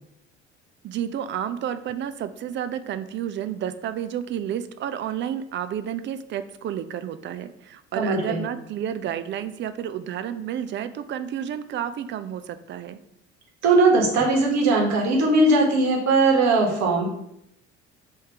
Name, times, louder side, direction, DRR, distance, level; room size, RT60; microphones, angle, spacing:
voice 1, 0.8-13.0, right 9 dB, 35° right, 11 dB, 0.4 m, -31 dB
voice 2, 7.9-8.4 13.6-17.1, right 2 dB, 55° right, -1 dB, 1.4 m, -19 dB
3.5 x 2.8 x 4.6 m, 0.75 s
hypercardioid pair, 55°, 33 cm